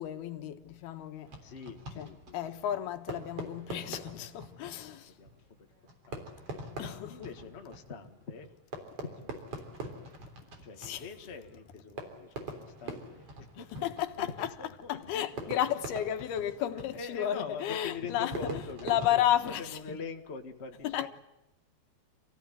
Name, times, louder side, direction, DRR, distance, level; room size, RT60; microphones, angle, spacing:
voice 1, 0.0-1.3 2.0-2.1 2.3-5.1 6.8-7.3 10.8-11.0 13.6-14.5 14.9-18.3 18.8-19.8 20.8-21.1, left 11 dB, 90° left, 3.3 m, -32 dB
Fireworks, 1.2-20.1, right 2 dB, 40° right, 4.3 m, -45 dB
voice 2, 1.4-2.4 3.8-4.3 4.6-6.2 7.1-9.4 9.8-10.1 10.6-13.8 14.2-15.5 16.4-16.5 16.9-21.1, left 4 dB, 30° left, 1.3 m, -44 dB
28.0 x 16.0 x 9.3 m
omnidirectional pair, 4.4 m